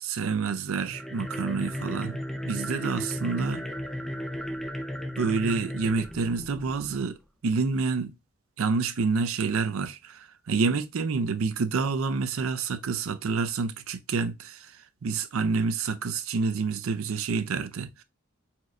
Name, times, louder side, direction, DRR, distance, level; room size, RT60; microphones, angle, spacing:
voice 1, 0.0-3.7 5.2-7.2 7.4-8.1 8.6-14.7 15.0-18.0, right 4 dB, 75° right, 0.5 m, -28 dB
sound 1, 0.8-7.1, equal, ahead, 0.4 m, -35 dB
4.4 x 2.5 x 3.0 m
head